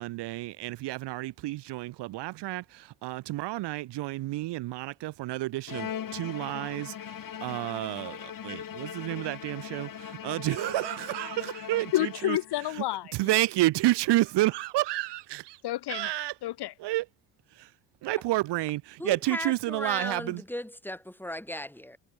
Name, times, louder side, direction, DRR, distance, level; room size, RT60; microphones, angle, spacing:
voice 1, 0.0-12.4 13.1-15.6 15.9-16.3 16.8-17.0 17.5-17.7 18.0-20.4, right 17 dB, 75° right, 3.1 m, -30 dB
Bowed string instrument, 5.7-12.6, left 9 dB, 50° left, 6.7 m, -40 dB
voice 2, 11.9-13.4 15.6-16.1 16.4-16.7, left 15 dB, 70° left, 3.3 m, -30 dB
voice 3, 19.0-22.0, left 1 dB, 5° left, 7.4 m, -36 dB
supercardioid pair, 80°, 42 cm